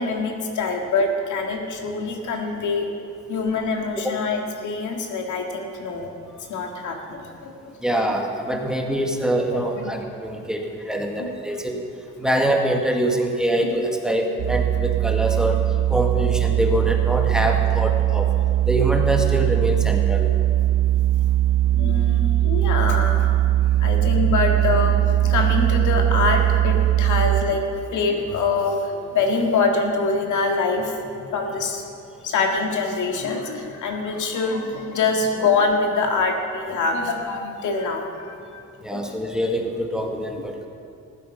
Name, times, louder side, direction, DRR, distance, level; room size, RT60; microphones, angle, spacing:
voice 1, 0.0-2.9 3.3-6.1 6.5-7.5 9.7-9.9 11.2-11.3 13.6-13.7 21.7-23.3 23.8-27.6 27.9-31.8 32.2-38.6 38.9-39.0, left 4 dB, 75° left, 3 dB, 1.9 m, -24 dB
voice 2, 7.8-11.7 12.2-15.6 15.9-18.3 18.7-20.3 38.8-40.7, right 1 dB, ahead, 2 dB, 1.7 m, -24 dB
sound 1, 14.4-27.4, right 13 dB, 85° right, 1.2 m, -20 dB
15.0 x 12.0 x 5.5 m, 2.4 s
cardioid pair, 90°, 30 cm